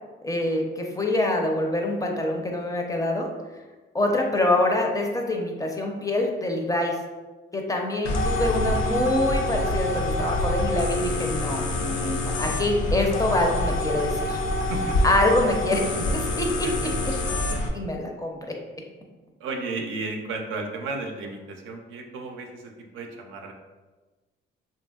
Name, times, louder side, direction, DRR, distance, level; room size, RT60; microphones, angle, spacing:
voice 1, 0.2-3.3 3.9-6.9 7.5-14.4 15.0-15.8 16.1-16.5 17.7-18.3, left 1 dB, 15° left, 1 dB, 0.4 m, -25 dB
sound 1, 8.0-17.7, left 1 dB, 85° left, 0.5 m, -26 dB
voice 2, 14.6-15.0 16.3-16.4 16.6-16.7 19.4-23.5, right 3 dB, 85° right, 2 dB, 0.5 m, -33 dB
2.8 x 2.6 x 2.3 m, 1.3 s
cardioid pair, 90°, 20 cm